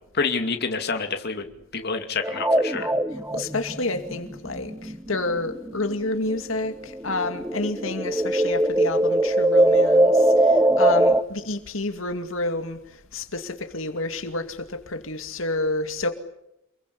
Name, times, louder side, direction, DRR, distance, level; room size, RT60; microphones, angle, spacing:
voice 1, 0.1-1.5 1.7-2.9, left 4 dB, 55° left, 5 dB, 2.6 m, -27 dB
sound 1, 2.2-6.3 6.6-11.2, right 1 dB, 10° right, 1.1 m, -21 dB
voice 2, 3.3-12.8 13.1-16.1, left 2 dB, 75° left, 7 dB, 2.5 m, -29 dB
29.0 x 22.5 x 8.6 m, 0.83 s
head